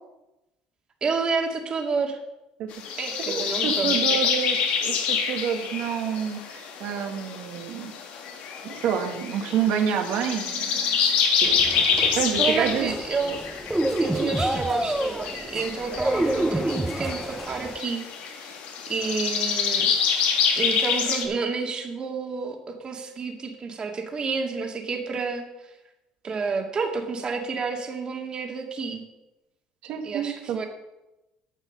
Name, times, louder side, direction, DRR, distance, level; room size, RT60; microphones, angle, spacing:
voice 1, 1.0-2.2 3.0-4.3 12.4-13.4 14.0-18.0 18.3-18.6 18.9-20.0 20.6-25.5 26.2-29.1 30.0-30.6, right 4 dB, 35° right, 2 dB, 2.1 m, -30 dB
sound 1, 2.7-21.3, left 6 dB, 70° left, 1.8 m, -27 dB
voice 2, 3.3-7.9 8.6-11.1 11.4-11.5 12.2-13.0 29.8-30.6, right 8 dB, 70° right, 4 dB, 1.9 m, -28 dB
sound 2, 11.4-17.8, right 1 dB, 5° right, 0.8 m, -28 dB
10.0 x 6.5 x 6.6 m, 0.96 s
supercardioid pair, 90°, 2 cm